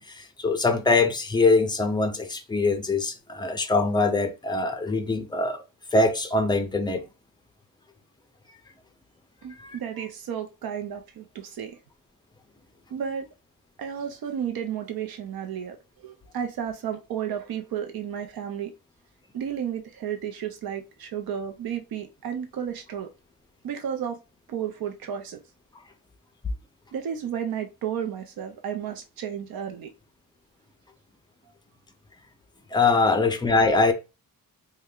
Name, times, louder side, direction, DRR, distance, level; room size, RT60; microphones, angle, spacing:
voice 1, 0.0-5.6 5.9-7.0 9.6-9.8 32.7-33.9, left 3 dB, 15° left, 0.3 m, -23 dB
voice 2, 9.4-11.8 12.9-13.3 13.8-15.8 16.0-18.7 19.3-23.1 23.6-24.2 24.5-25.4 26.9-29.9 33.1-33.2, right 8 dB, 80° right, 0.6 m, -32 dB
3.2 x 2.2 x 3.5 m
wide cardioid pair, 180°, 35 cm